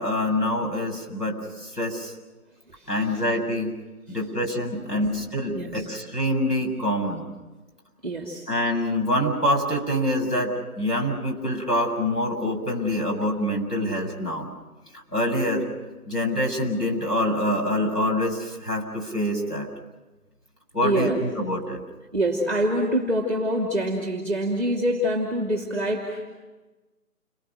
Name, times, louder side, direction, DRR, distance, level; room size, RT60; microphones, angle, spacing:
voice 1, 0.0-2.1 2.9-3.7 4.1-7.3 8.5-14.5 15.1-15.6 16.1-19.7 20.7-21.8, left 1 dB, 85° left, 1 dB, 7.5 m, -25 dB
voice 2, 2.7-3.2 4.1-4.2 4.9-5.1 5.5-5.9 8.0-8.5 20.8-21.2 22.1-26.3, right 1 dB, 5° left, 2 dB, 2.1 m, -26 dB
29.5 x 23.0 x 6.3 m, 1.2 s
figure-of-eight pair, 145°, 46 cm